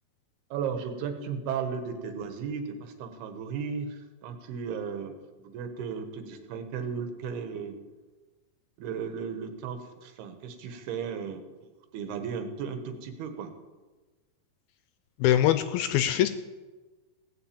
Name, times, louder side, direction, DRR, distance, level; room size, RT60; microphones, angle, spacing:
voice 1, 0.5-7.8 8.8-13.5, right 6 dB, 75° right, 7 dB, 3.3 m, -35 dB
voice 2, 15.2-16.3, left 12 dB, 80° left, 11 dB, 2.3 m, -23 dB
17.0 x 7.4 x 8.6 m, 1.3 s
omnidirectional pair, 4.7 m